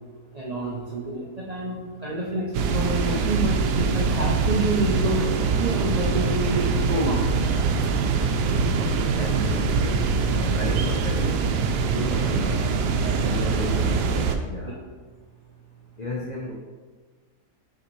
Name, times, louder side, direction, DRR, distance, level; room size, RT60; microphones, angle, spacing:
voice 1, 0.3-5.2 5.6-7.5 13.0-13.4, right 2 dB, 55° right, -3 dB, 0.4 m, -28 dB
sound 1, 2.5-14.4, right 4 dB, 90° right, 1.2 m, -23 dB
voice 2, 8.7-11.4 11.8-12.7 13.1-14.8 16.0-16.5, left 1 dB, 50° left, -3 dB, 0.5 m, -34 dB
6.6 x 4.7 x 3.1 m, 1.4 s
omnidirectional pair, 1.7 m